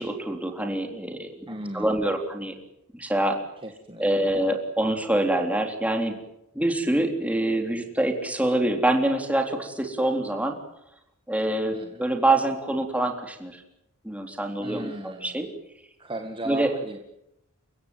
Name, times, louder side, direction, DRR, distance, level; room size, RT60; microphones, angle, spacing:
voice 1, 0.0-1.3 1.7-2.5 2.9-3.4 4.0-6.2 6.5-10.6 11.3-13.6 14.0-15.5 16.5-16.7, right 1 dB, 5° right, 4 dB, 3.7 m, -25 dB
voice 2, 1.5-1.9 3.6-4.1 11.7-12.0 14.6-15.4 16.0-17.0, right 1 dB, 25° right, 5 dB, 1.9 m, -36 dB
30.0 x 17.0 x 9.4 m, 0.83 s
head